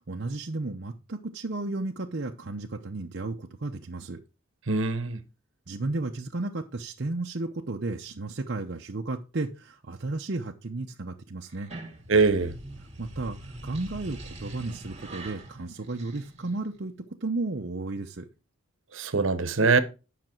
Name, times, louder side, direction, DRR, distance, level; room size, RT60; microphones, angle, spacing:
voice 1, 0.0-4.2 5.7-11.7 13.0-16.9 17.2-18.3, right 2 dB, 55° right, 0.7 m, -33 dB
voice 2, 4.7-5.2 12.1-12.5 18.9-19.8, right 4 dB, 70° right, 1.0 m, -22 dB
sound 1, 11.5-16.8, right 1 dB, 30° right, 1.8 m, -43 dB
10.0 x 5.9 x 4.5 m
head